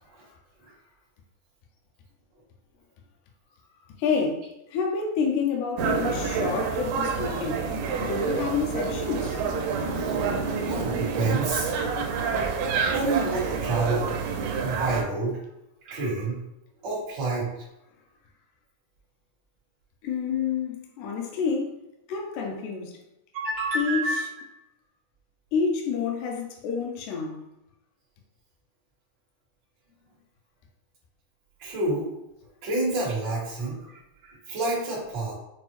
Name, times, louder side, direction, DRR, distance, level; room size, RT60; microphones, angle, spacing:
voice 1, 4.0-4.5 4.7-7.6 8.0-9.4 12.3-12.4 20.0-21.8 22.1-23.0 23.8-24.2 25.5-27.4, left 5 dB, 85° left, 1.7 m, -28 dB
sound 1, 5.8-15.0, right 5 dB, 85° right, 2.2 m, -28 dB
voice 2, 10.5-11.7 12.9-14.1 14.6-15.4 15.8-16.4 16.8-17.5 23.3-24.3 31.6-32.1 32.6-33.9 34.2-35.3, right 3 dB, 50° right, 1.3 m, -28 dB
6.0 x 2.0 x 3.0 m
omnidirectional pair, 3.9 m